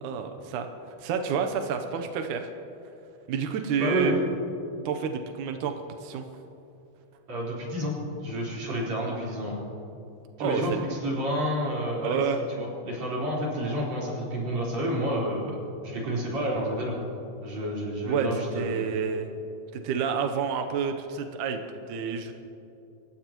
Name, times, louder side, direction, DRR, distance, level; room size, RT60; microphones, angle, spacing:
voice 1, 0.0-0.7 1.0-2.5 3.3-4.2 4.9-5.7 6.0-6.2 10.4-10.8 12.0-12.4 18.0-19.3 19.8-22.3, right 6 dB, 80° right, 6 dB, 1.8 m, -29 dB
voice 2, 3.8-4.2 7.3-9.6 10.4-15.6 15.8-16.9 17.4-18.8, equal, 40° right, -5 dB, 5.3 m, -29 dB
29.5 x 15.5 x 3.0 m, 2.9 s
omnidirectional pair, 4.8 m